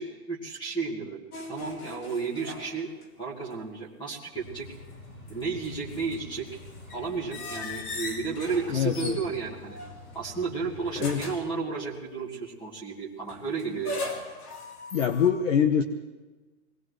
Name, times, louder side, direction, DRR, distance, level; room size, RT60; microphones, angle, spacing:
voice 1, 0.0-2.9 3.2-4.7 5.3-6.6 6.9-9.8 10.1-14.1, right 5 dB, 10° left, -2 dB, 1.6 m, -33 dB
sound 1, 1.3-3.2 3.5-3.6 5.0-10.4 11.0-11.6 13.3-15.3, left 2 dB, 75° left, 3.4 m, -39 dB
sound 2, 4.3-11.2, left 2 dB, 30° left, 5.2 m, -47 dB
voice 2, 8.7-9.2 11.0-11.2 14.9-15.8, left 8 dB, 55° left, 9 dB, 0.9 m, -24 dB
24.5 x 19.0 x 3.2 m, 1.2 s
hypercardioid pair, 160°, 46 cm